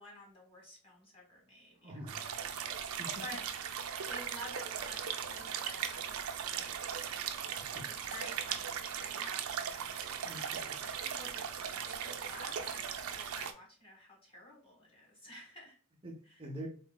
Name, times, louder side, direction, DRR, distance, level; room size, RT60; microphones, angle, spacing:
voice 1, 0.0-2.1 3.2-3.4 4.1-6.9 7.9-10.0 10.8-15.8 16.2-16.4, equal, 25° left, -2 dB, 1.5 m, -51 dB
voice 2, 1.8-2.6 3.0-3.1 7.6-7.8 10.2-10.8 16.0-16.7, right 1 dB, 25° right, -2 dB, 0.6 m, -46 dB
sound 1, 2.1-13.5, right 8 dB, 75° right, 0.4 m, -38 dB
3.8 x 3.1 x 2.2 m, 0.42 s
head